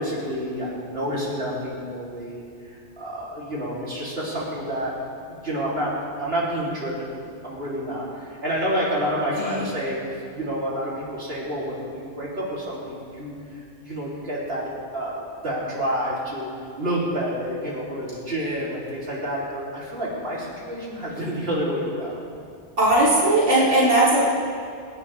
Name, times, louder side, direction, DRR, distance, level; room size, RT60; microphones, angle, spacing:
voice 1, 0.0-4.9 5.3-5.9 6.2-7.1 7.4-10.0 10.3-16.5 16.8-22.3, equal, 55° right, -6 dB, 4.1 m, -29 dB
voice 2, 22.8-24.2, right 1 dB, 80° right, -9 dB, 3.9 m, -18 dB
27.5 x 11.0 x 3.7 m, 2.3 s
omnidirectional pair, 1.2 m